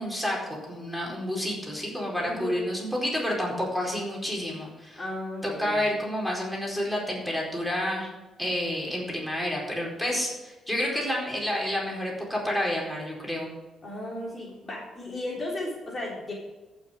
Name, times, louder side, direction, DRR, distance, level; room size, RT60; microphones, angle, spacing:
voice 1, 0.0-5.0 5.4-8.1 8.4-13.5, left 1 dB, 5° left, -3 dB, 4.4 m, -29 dB
voice 2, 5.0-5.9 13.8-16.3, left 1 dB, 35° left, -4 dB, 3.6 m, -35 dB
14.5 x 6.5 x 5.1 m, 1.1 s
cardioid pair, 90°, 0 cm